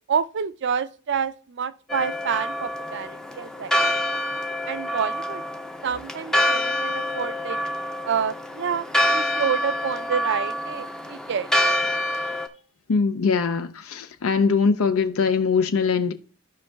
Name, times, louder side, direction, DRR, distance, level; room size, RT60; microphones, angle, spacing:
voice 1, 0.1-4.0 4.7-5.4 5.8-7.6 8.1-8.9 9.1-11.8, right 7 dB, 55° right, 0.4 m, -28 dB
Church bell, 1.9-12.5, equal, 5° left, 0.4 m, -26 dB
voice 2, 12.9-16.1, left 5 dB, 90° left, 0.5 m, -22 dB
15.5 x 5.3 x 2.3 m
head